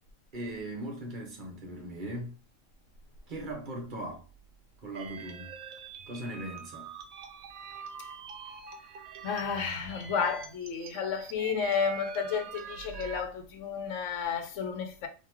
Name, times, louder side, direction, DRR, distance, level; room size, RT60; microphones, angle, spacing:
voice 1, 0.3-2.4 3.3-4.2 4.8-5.6 6.1-6.9, right 1 dB, 40° right, 1.0 m, -39 dB
sound 1, 4.9-13.2, right 7 dB, 80° right, 1.0 m, -45 dB
voice 2, 9.2-15.1, left 6 dB, 70° left, 0.9 m, -32 dB
3.7 x 2.6 x 3.0 m
omnidirectional pair, 1.4 m